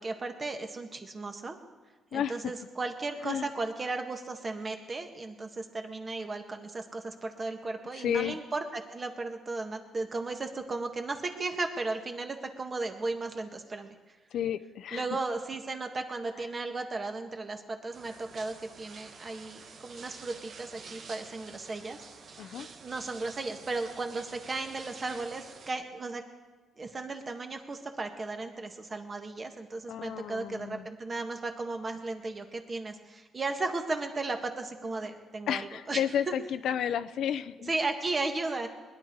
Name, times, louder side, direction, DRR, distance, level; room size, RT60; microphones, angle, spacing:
voice 1, 0.0-1.6 2.1-13.9 14.9-22.0 22.3-22.4 22.8-26.2 26.8-36.3 37.7-38.7, right 3 dB, 35° right, 5 dB, 1.7 m, -35 dB
voice 2, 2.1-2.4 3.2-3.5 7.9-8.4 14.3-15.1 22.4-22.7 29.9-30.9 35.5-37.7, left 9 dB, 75° left, 13 dB, 0.6 m, -32 dB
sound 1, 17.9-25.7, right 5 dB, 55° right, 1.3 m, -49 dB
20.5 x 11.0 x 4.7 m, 1.3 s
cardioid pair, 90°, 0 cm